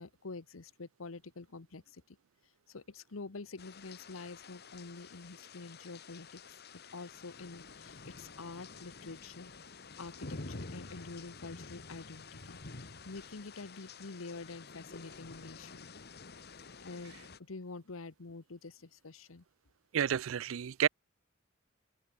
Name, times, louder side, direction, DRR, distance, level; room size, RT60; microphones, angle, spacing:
voice 1, 0.0-2.2 2.7-6.6 6.9-9.5 10.0-12.6 13.0-15.9 16.8-19.4, left 3 dB, 90° left, 1.0 m, -47 dB
sound 1, 3.6-17.4, left 3 dB, 55° left, 1.7 m, -49 dB
voice 2, 19.9-20.9, right 9 dB, 75° right, 0.4 m, -30 dB
open air
head